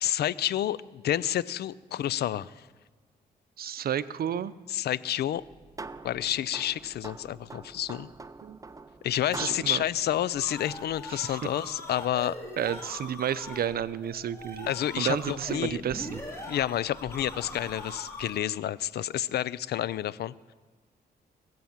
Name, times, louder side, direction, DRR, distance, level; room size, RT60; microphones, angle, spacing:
voice 1, 0.0-2.5 4.7-5.4 6.0-8.1 9.0-12.4 14.7-15.8 16.5-20.3, left 11 dB, 80° left, 20 dB, 0.5 m, -29 dB
voice 2, 3.6-4.5 8.4-8.6 9.4-9.8 11.1-11.4 12.6-14.7 15.0-16.2, right 9 dB, 65° right, 16 dB, 0.6 m, -31 dB
sound 1, 5.4-11.2, right 3 dB, 20° right, 0.6 m, -45 dB
sound 2, 10.3-18.6, left 1 dB, 15° left, 3.3 m, -42 dB
22.0 x 7.6 x 7.2 m, 1.4 s
cardioid pair, 85°, 17 cm